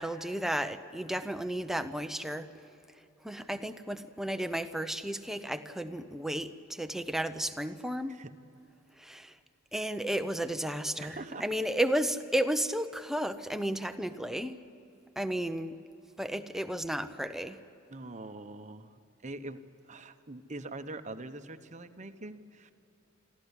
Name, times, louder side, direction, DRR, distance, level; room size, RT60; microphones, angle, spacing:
voice 1, 0.0-2.5 3.2-8.2 9.0-9.4 9.7-14.6 15.2-15.7 16.2-17.6, right 1 dB, ahead, 9 dB, 0.7 m, -33 dB
voice 2, 11.0-11.5 17.9-22.7, right 2 dB, 35° right, 9 dB, 0.9 m, -43 dB
24.0 x 14.5 x 9.9 m, 2.9 s
head